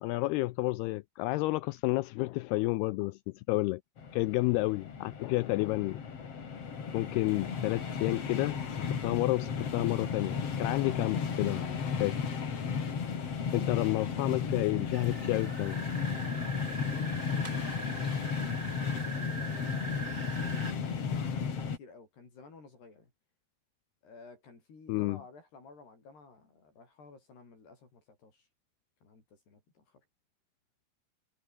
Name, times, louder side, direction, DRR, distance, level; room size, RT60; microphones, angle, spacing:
voice 1, 0.0-3.8 4.1-6.0 6.9-12.2 13.5-15.8 24.9-25.2, left 20 dB, 85° left, 2.3 m, -31 dB
sound 1, 4.0-21.8, left 6 dB, 40° left, 3.3 m, -34 dB
sound 2, 14.9-20.7, right 4 dB, 40° right, 1.1 m, -43 dB
voice 2, 16.2-17.6 18.7-23.1 24.0-28.5 29.0-30.0, left 4 dB, 65° left, 9.6 m, -54 dB
omnidirectional pair, 5.1 m